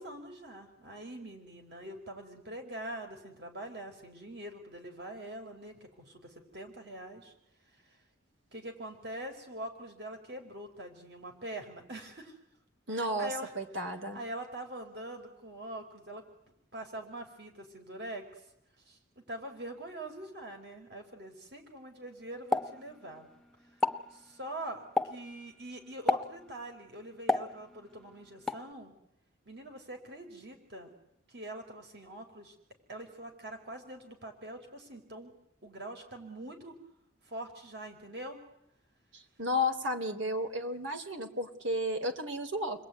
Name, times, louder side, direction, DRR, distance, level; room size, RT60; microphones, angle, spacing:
voice 1, 0.0-7.3 8.5-12.4 12.9-13.5 14.1-16.2 16.7-18.4 18.9-23.3 24.1-28.9 29.4-30.9 31.3-32.5 32.9-35.3 35.6-36.7 37.2-38.4, right 1 dB, 55° right, 4 dB, 4.9 m, -44 dB
voice 2, 12.9-14.2 39.4-42.9, left 1 dB, 80° right, 6 dB, 3.5 m, -33 dB
Explosion, 22.5-23.4 23.7-24.1 25.0-25.3 26.1-26.5 27.3-28.0 28.5-28.7, left 3 dB, ahead, 1.0 m, -31 dB
30.0 x 21.0 x 9.5 m, 0.77 s
head